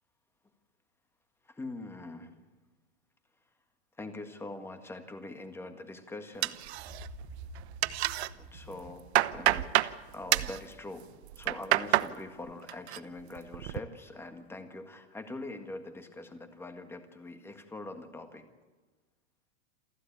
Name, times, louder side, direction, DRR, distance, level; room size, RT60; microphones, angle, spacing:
voice 1, 1.5-2.4 4.0-6.6 8.3-11.1 11.4-18.5, left 2 dB, 5° left, 7 dB, 1.7 m, -43 dB
sound 1, 6.4-7.3 7.5-8.3 8.7-9.9 10.3-10.6 11.2-12.1 12.5-13.0 13.4-13.8, right 15 dB, 65° right, 0.9 m, -28 dB
sound 2, 6.7-10.6, right 1 dB, 20° right, 3.0 m, -49 dB
28.0 x 13.0 x 8.7 m, 1.3 s
supercardioid pair, 150°, 35 cm